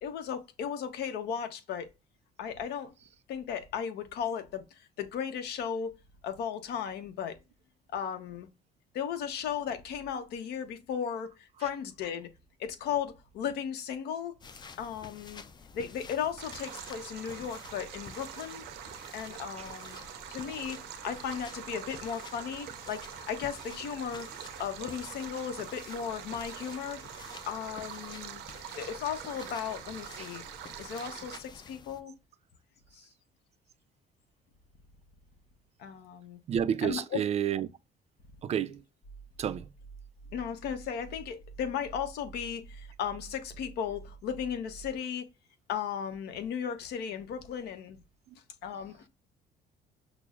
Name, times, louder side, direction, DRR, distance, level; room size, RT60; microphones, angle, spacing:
voice 1, 0.0-1.9 2.4-2.9 3.3-6.0 6.2-7.4 7.9-8.5 8.9-12.3 12.6-14.4 14.8-15.4 15.7-18.6 19.1-20.0 20.3-24.3 24.6-28.4 28.8-30.4 30.8-32.1 32.9-33.1 35.8-36.4 36.8-37.2 40.3-45.3 45.7-48.0 48.3-49.1, left 8 dB, 75° left, 0.8 m, -36 dB
sound 1, 14.4-32.0, left 5 dB, 25° left, 0.4 m, -50 dB
Stream, 16.4-31.4, right 10 dB, 85° right, 0.7 m, -44 dB
voice 2, 36.5-37.7 38.4-38.8 39.4-39.7 48.3-48.4, right 9 dB, 40° right, 0.4 m, -30 dB
sound 2, 39.0-44.9, right 5 dB, 50° left, 1.2 m, -49 dB
5.9 x 2.0 x 2.3 m
cardioid pair, 110°, 17 cm